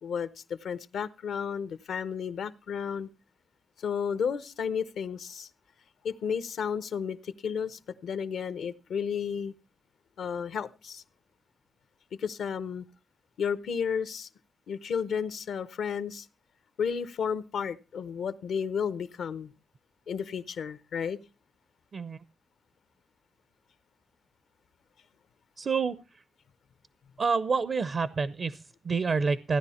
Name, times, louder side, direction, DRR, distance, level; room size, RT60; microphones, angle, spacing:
voice 1, 0.0-3.1 3.8-5.5 6.0-9.5 10.2-11.0 12.2-12.9 13.4-14.3 14.7-16.3 16.8-19.5 20.1-21.2, left 7 dB, 85° left, 14 dB, 0.9 m, -32 dB
voice 2, 21.9-22.2 25.6-26.2 27.2-29.6, right 5 dB, 55° right, 15 dB, 0.6 m, -28 dB
15.5 x 10.0 x 4.3 m, 0.32 s
cardioid pair, 85°, 0 cm